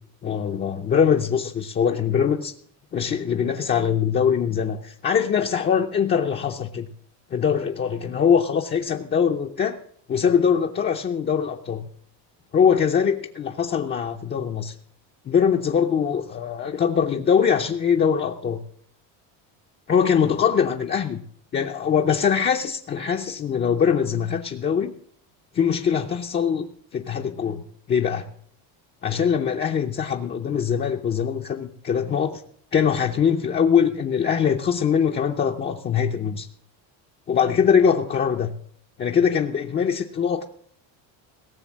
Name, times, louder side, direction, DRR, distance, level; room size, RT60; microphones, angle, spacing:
voice 1, 0.2-2.5 2.9-6.9 7.3-9.8 10.1-11.9 12.5-14.7 15.3-18.6 19.9-21.2 21.5-24.9 25.5-28.3 29.0-32.4 32.7-36.5 37.3-38.5 39.0-40.4, left 7 dB, 20° left, 2 dB, 0.5 m, -22 dB
17.5 x 6.9 x 7.2 m, 0.67 s
cardioid pair, 150°, 47 cm